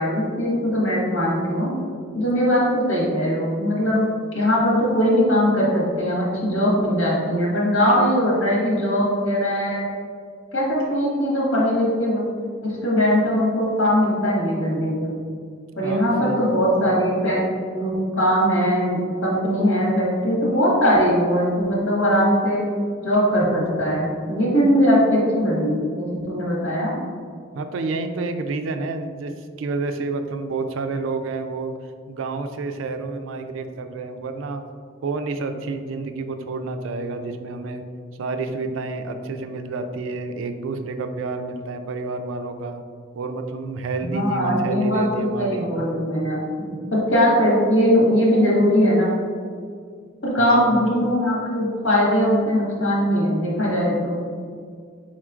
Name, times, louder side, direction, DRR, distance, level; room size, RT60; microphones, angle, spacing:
voice 1, 0.0-1.7 2.1-4.1 4.3-9.8 10.5-12.2 12.6-15.1 15.8-17.4 17.7-22.6 23.0-26.9 44.0-49.1 50.2-54.2, equal, 80° left, -5 dB, 1.5 m, -20 dB
voice 2, 15.8-16.5 27.5-31.7 32.1-34.7 35.0-37.8 38.2-42.8 43.1-45.7 50.4-50.7, right 3 dB, 80° right, 7 dB, 0.4 m, -29 dB
4.4 x 4.2 x 2.4 m, 2.1 s
head